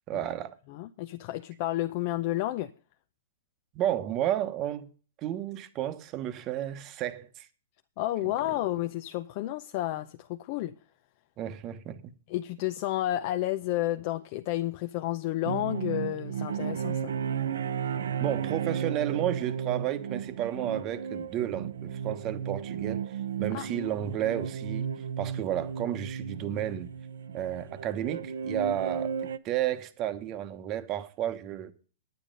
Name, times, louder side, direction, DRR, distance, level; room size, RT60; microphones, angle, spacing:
voice 1, 0.1-0.6 3.7-4.9 5.2-7.5 11.4-12.1 18.2-23.0 23.4-24.9 25.2-26.9 27.3-31.7, right 11 dB, 30° right, 1.1 m, -32 dB
voice 2, 0.7-2.7 8.0-10.7 12.3-17.1 23.5-23.7, left 14 dB, 40° left, 0.6 m, -31 dB
sound 1, 15.4-29.4, right 7 dB, 80° right, 0.7 m, -34 dB
9.9 x 9.3 x 5.1 m
hypercardioid pair, 150°, 0 cm